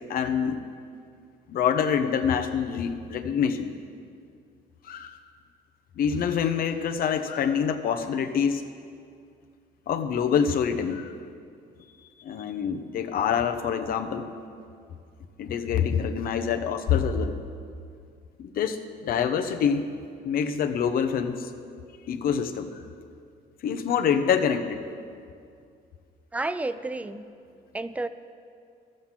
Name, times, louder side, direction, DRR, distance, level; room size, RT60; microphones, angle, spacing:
voice 1, 0.1-0.6 1.5-3.7 4.8-5.2 6.0-8.6 9.9-11.1 12.2-14.3 15.4-17.4 18.4-19.8 20.2-21.5 22.1-22.8 23.6-24.9, left 7 dB, 60° left, 7 dB, 0.9 m, -26 dB
voice 2, 26.3-27.2 27.7-28.1, right 2 dB, 10° right, 13 dB, 0.4 m, -30 dB
13.0 x 7.8 x 7.4 m, 2.3 s
cardioid pair, 110°, 17 cm